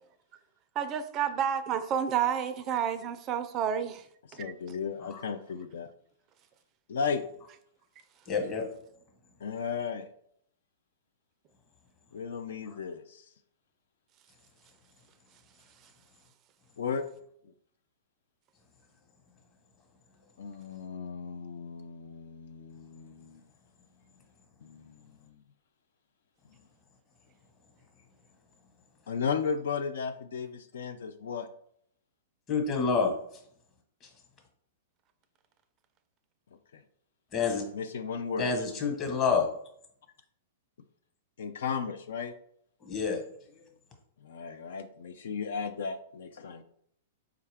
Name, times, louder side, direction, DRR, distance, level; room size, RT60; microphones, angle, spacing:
voice 1, 0.8-4.0 4.3-4.5, right 8 dB, 35° right, 0.3 m, -30 dB
voice 2, 4.3-5.9 6.9-7.2 9.4-10.1 12.1-13.2 16.8-17.1 20.4-23.4 24.6-25.4 29.1-31.5 36.7-36.8 37.7-38.5 41.4-42.3 44.2-46.6, left 6 dB, 70° left, 0.3 m, -35 dB
voice 3, 8.3-8.6 12.7-12.8 32.5-33.1 37.3-37.6 38.4-39.5 42.8-43.2 43.6-43.7, left 5 dB, 35° left, 1.2 m, -28 dB
4.5 x 2.3 x 3.4 m
hypercardioid pair, 110°, 0 cm